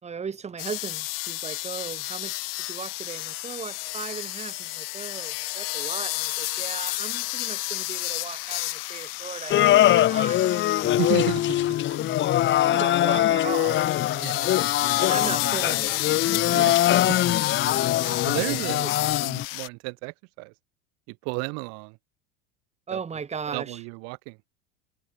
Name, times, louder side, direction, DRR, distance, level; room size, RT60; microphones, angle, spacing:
voice 1, 0.0-10.7 11.9-12.0 12.6-13.8 14.1-14.5 15.0-16.6 18.4-18.5 22.9-23.8, right 6 dB, 20° right, 5.2 m, -37 dB
sound 1, 0.6-19.7, left 22 dB, 75° left, 3.3 m, -31 dB
sound 2, 9.5-19.5, left 13 dB, 40° left, 2.2 m, -22 dB
voice 2, 10.8-11.6 12.0-12.2 14.2-14.5 14.9-15.1 16.5-17.4 18.0-18.9 19.2-20.5 21.1-22.0 22.9-23.0 23.5-24.4, right 34 dB, 60° right, 2.2 m, -33 dB
supercardioid pair, 115°, 29 cm